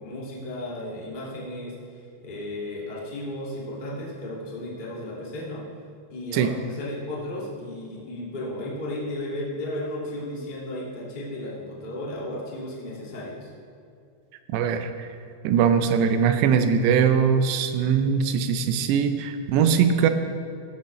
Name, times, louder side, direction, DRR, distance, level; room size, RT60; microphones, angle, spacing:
voice 1, 0.0-5.7 6.1-13.5, left 1 dB, 40° left, -5 dB, 0.6 m, -34 dB
voice 2, 14.5-15.1 15.4-20.1, right 7 dB, 90° right, 8 dB, 2.9 m, -21 dB
15.0 x 11.5 x 3.2 m, 2.5 s
omnidirectional pair, 4.8 m